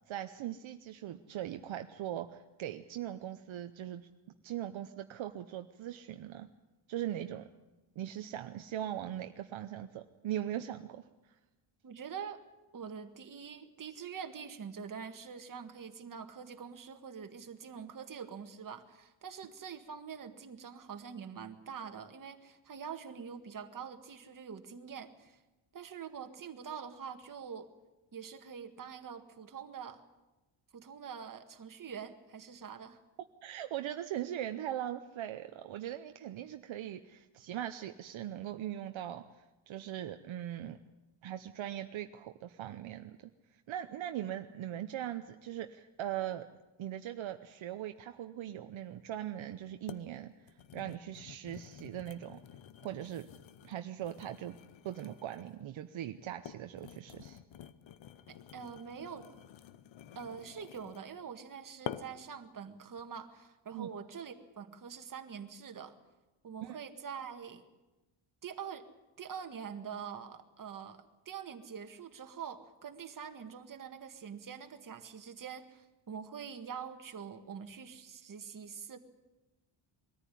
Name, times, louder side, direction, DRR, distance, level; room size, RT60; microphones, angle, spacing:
voice 1, 0.1-4.1 4.4-6.5 6.9-7.5 8.0-11.4 33.4-40.8 41.2-43.2 43.7-46.5 46.8-50.3 50.7-52.4 52.8-53.3 53.6-54.6 54.8-57.4 63.7-63.9 66.6-66.8, right 11 dB, 70° right, 7 dB, 0.9 m, -40 dB
voice 2, 11.8-12.4 12.7-25.4 25.7-27.7 28.1-30.0 30.7-33.0 58.3-59.2 60.1-65.9 66.4-67.6 68.4-68.8 69.2-79.0, right 7 dB, 40° right, 6 dB, 1.8 m, -45 dB
sound 1, 49.1-49.2 49.9-50.1 50.4-55.6 56.2-61.1 61.9-62.3 62.8-63.1, left 10 dB, 65° left, 1.1 m, -49 dB
22.0 x 14.0 x 10.0 m, 1.1 s
cardioid pair, 135°, 48 cm